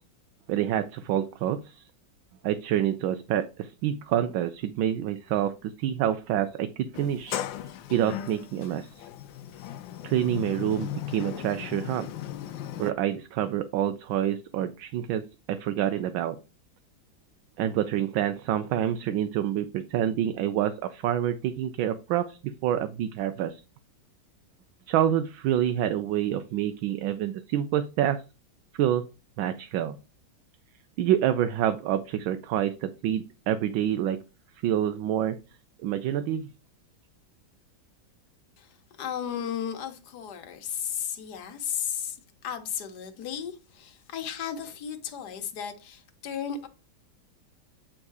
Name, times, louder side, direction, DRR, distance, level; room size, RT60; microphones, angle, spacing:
voice 1, 0.5-1.8 2.4-7.4 7.9-8.9 10.0-12.1 12.8-15.2 15.5-16.4 17.6-23.6 24.9-28.2 28.8-29.0 29.4-30.0 31.0-34.2 34.6-35.4 35.8-36.5, right 11 dB, 85° right, 1.4 m, -27 dB
Sliding door, 6.9-12.9, left 11 dB, 80° left, 1.3 m, -37 dB
voice 2, 38.6-42.2 42.4-46.7, left 8 dB, 60° left, 1.5 m, -34 dB
8.9 x 3.7 x 4.7 m
omnidirectional pair, 2.1 m